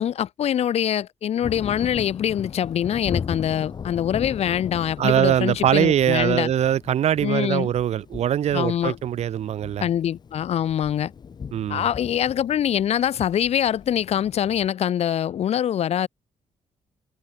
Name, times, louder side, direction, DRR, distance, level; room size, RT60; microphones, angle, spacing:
voice 1, 0.0-6.5 7.2-7.7 8.5-9.0 9.8-11.1 11.7-16.1, left 10 dB, 60° left, 3.0 m, -24 dB
Thunder, 1.4-14.7, left 6 dB, 35° left, 7.6 m, -38 dB
voice 2, 5.0-9.8 11.5-11.9, right 10 dB, 60° right, 2.1 m, -22 dB
wide cardioid pair, 180°, 12 cm